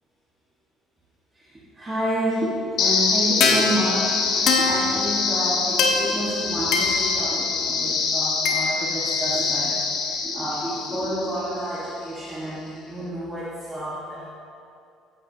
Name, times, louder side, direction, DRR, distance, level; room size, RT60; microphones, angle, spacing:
voice 1, 1.7-14.3, equal, 15° right, -8 dB, 1.3 m, -29 dB
sound 1, 2.8-11.8, left 4 dB, 55° left, 1.2 m, -23 dB
15.5 x 9.8 x 2.7 m, 2.5 s
cardioid pair, 180°, 0 cm